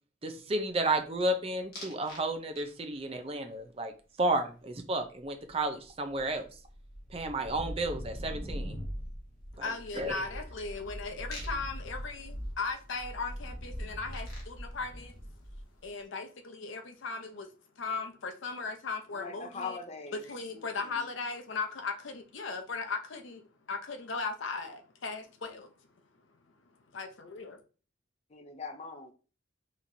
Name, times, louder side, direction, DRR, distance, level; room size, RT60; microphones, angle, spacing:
voice 1, 0.2-3.9 4.2-6.4 7.1-8.8 9.6-9.7 9.9-10.2, right 2 dB, 30° right, 0.5 m, -32 dB
sound 1, 1.7-2.2 2.6-3.0 5.5-5.6 5.8-15.9, equal, 50° left, 1.5 m, -41 dB
voice 2, 9.5-15.1 15.8-17.5 17.8-19.8 20.2-23.4 23.7-25.7 26.9-27.6, left 4 dB, 80° left, 0.7 m, -37 dB
voice 3, 19.1-21.1 28.3-29.1, left 4 dB, 35° left, 0.5 m, -42 dB
4.1 x 3.0 x 2.6 m
head